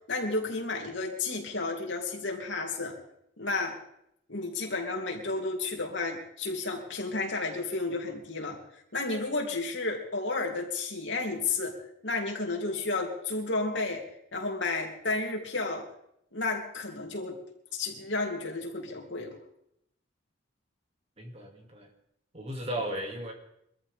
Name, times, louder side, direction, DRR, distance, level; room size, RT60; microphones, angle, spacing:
voice 1, 0.1-2.9 3.4-3.8 4.3-8.6 8.9-11.7 12.0-14.0 14.3-15.9 16.3-17.4 17.7-19.4, left 3 dB, 65° left, 0 dB, 3.1 m, -32 dB
voice 2, 21.2-21.9 22.3-23.3, right 1 dB, 30° right, 1 dB, 2.5 m, -35 dB
23.5 x 13.5 x 3.6 m, 0.76 s
head